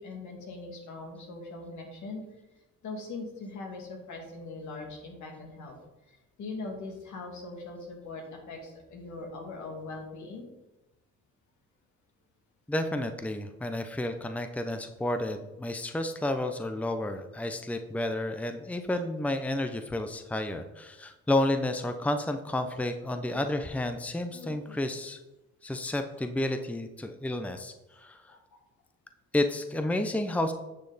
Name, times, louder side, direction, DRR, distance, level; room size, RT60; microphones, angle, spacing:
voice 1, 0.0-2.2 2.8-5.8 6.1-10.5 23.3-23.4 24.3-24.8 28.3-28.6, left 3 dB, 70° left, 0 dB, 2.7 m, -41 dB
voice 2, 12.7-25.2 25.6-28.3 29.3-30.5, left 1 dB, 5° left, 7 dB, 0.7 m, -31 dB
9.7 x 6.3 x 4.1 m, 1.0 s
cardioid pair, 90°, 30 cm